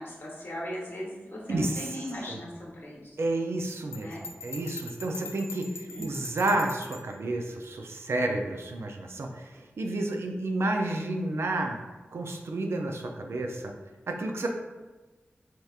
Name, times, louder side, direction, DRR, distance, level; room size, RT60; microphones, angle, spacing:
voice 1, 0.0-3.2 4.0-4.2 5.6-6.1, equal, 60° left, -4 dB, 0.9 m, -38 dB
voice 2, 1.5-2.0 2.3-2.4 3.2-4.1 4.4-5.6 6.0-11.8 12.1-13.7 14.1-14.5, right 2 dB, 80° right, 3 dB, 0.4 m, -30 dB
Bell, 3.9-7.1, left 3 dB, 85° left, 0.4 m, -43 dB
3.3 x 2.8 x 2.4 m, 1.2 s
wide cardioid pair, 60°, 4 cm